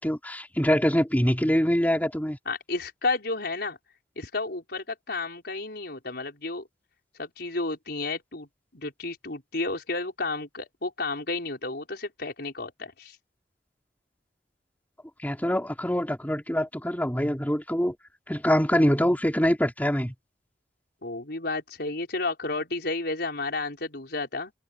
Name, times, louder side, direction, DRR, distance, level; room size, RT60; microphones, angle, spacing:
voice 1, 0.0-2.4 15.2-18.0 18.3-20.1, equal, 10° left, 4.0 m, -24 dB
voice 2, 2.5-3.8 4.2-6.7 7.2-8.5 8.7-13.2 21.0-24.5, left 3 dB, 65° left, 5.4 m, -32 dB
head